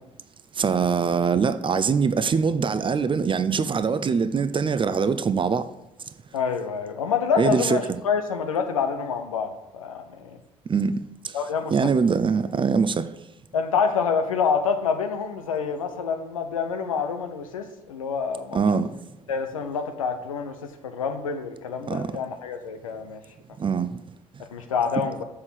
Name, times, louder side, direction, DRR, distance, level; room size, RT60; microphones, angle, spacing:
voice 1, 0.5-5.7 7.4-7.8 10.7-10.9 11.2-11.4 11.7-13.1 18.5-18.9 21.9-22.1 23.6-23.9, right 5 dB, 30° right, 0.6 m, -23 dB
voice 2, 6.3-10.4 11.3-11.9 13.5-18.6 19.3-20.5 20.8-23.2 24.5-25.2, left 6 dB, 85° left, 0.8 m, -27 dB
7.2 x 6.6 x 7.8 m
figure-of-eight pair, 50°, 17 cm